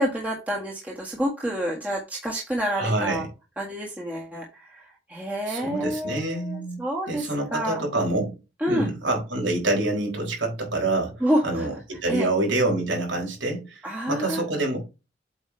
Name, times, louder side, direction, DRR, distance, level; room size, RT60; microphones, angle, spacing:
voice 1, 0.0-3.2 3.6-4.4 5.1-7.2 7.5-7.8 8.6-8.9 11.2-11.7 12.1-12.3 13.8-14.4, equal, 10° right, 1.6 m, -28 dB
voice 2, 2.7-3.3 5.5-6.8 7.1-8.4 8.7-13.8 14.1-14.8, right 2 dB, 90° right, 4.3 m, -26 dB
8.1 x 5.1 x 3.2 m
head